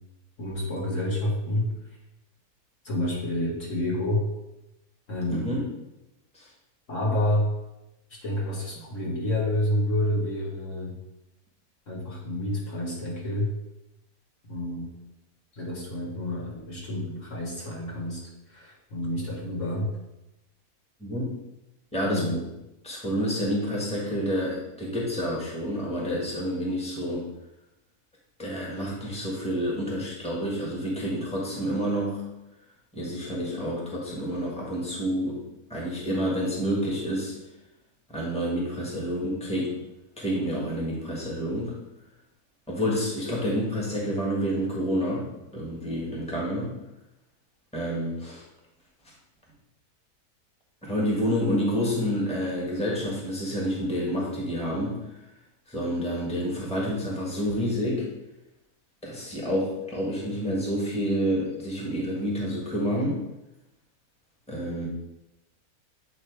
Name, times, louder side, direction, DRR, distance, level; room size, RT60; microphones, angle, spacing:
voice 1, 0.4-1.7 2.8-4.2 5.1-5.5 6.9-7.5 8.2-10.9 11.9-13.5 14.5-14.9 15.6-18.2 18.5-19.9 22.0-22.4, left 1 dB, 55° left, -4 dB, 1.7 m, -28 dB
voice 2, 5.3-5.6 6.3-6.5 21.0-21.4 21.9-22.4 22.8-27.2 28.4-32.2 32.9-35.4 35.7-37.3 38.1-39.7 40.2-41.8 42.7-45.3 45.5-46.7 47.7-48.4 50.8-55.2 55.7-58.1 59.0-63.2 64.5-64.9, equal, 5° left, -4 dB, 1.6 m, -28 dB
8.7 x 3.1 x 4.6 m, 0.93 s
omnidirectional pair, 1.6 m